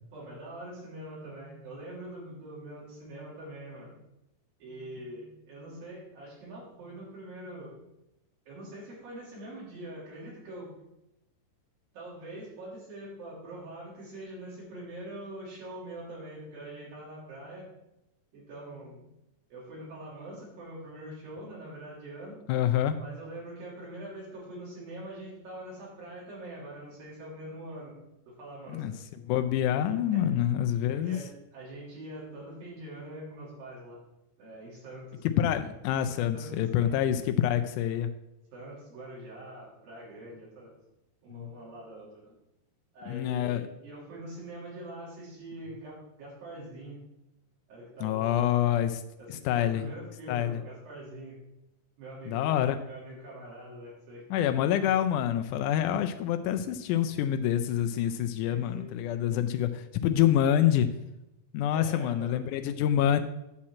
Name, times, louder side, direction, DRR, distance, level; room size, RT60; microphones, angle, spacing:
voice 1, 0.1-4.0 4.6-7.8 8.5-10.7 11.9-17.7 18.3-19.0 19.5-22.4 23.0-27.9 28.3-28.9 30.1-30.4 30.9-34.0 34.4-35.2 36.3-36.9 37.9-38.0 38.5-40.7 41.2-42.3 42.9-47.0 47.7-48.5 49.2-51.4 52.0-54.2 58.5-59.0 61.7-62.6, right 1 dB, 85° right, -6 dB, 4.9 m, -44 dB
voice 2, 22.5-23.0 28.7-28.9 29.3-31.2 35.2-38.1 41.3-41.5 43.1-43.6 48.0-49.0 49.3-49.9 50.3-50.6 52.3-52.8 54.3-60.9 61.5-63.2, left 10 dB, 85° left, 8 dB, 1.8 m, -26 dB
9.6 x 4.3 x 7.4 m, 0.90 s
omnidirectional pair, 4.0 m